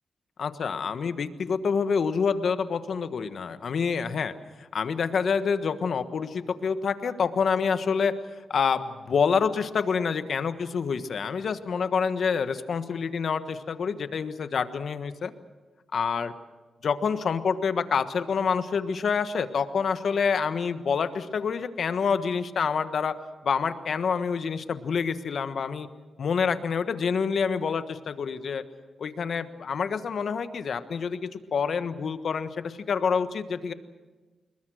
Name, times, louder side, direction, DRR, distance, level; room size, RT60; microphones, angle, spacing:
voice 1, 0.4-4.3 4.6-8.1 8.5-15.3 15.9-16.3 16.8-23.1 23.4-25.9 26.2-28.6 29.0-33.7, left 6 dB, 70° left, 10 dB, 1.3 m, -27 dB
27.0 x 21.5 x 6.4 m, 1.3 s
cardioid pair, 75°, 0 cm